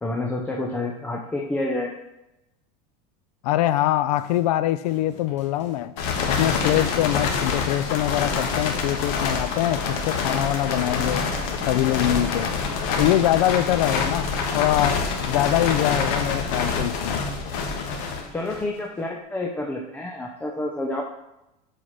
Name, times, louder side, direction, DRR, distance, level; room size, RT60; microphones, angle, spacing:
voice 1, 0.0-1.9 18.3-21.0, left 2 dB, 10° left, 0 dB, 0.7 m, -28 dB
voice 2, 3.4-5.9 6.3-11.3 11.7-12.5 13.0-17.2, left 14 dB, 85° left, 13 dB, 0.5 m, -24 dB
sound 1, 4.1-4.6 4.9-6.0 6.3-6.6 6.9-9.2 9.6-9.7 10.1-14.2, left 2 dB, 30° left, 2.2 m, -47 dB
sound 2, 6.0-18.8, left 5 dB, 65° left, 1.6 m, -26 dB
7.6 x 4.9 x 5.8 m, 0.91 s
supercardioid pair, 160°, 19 cm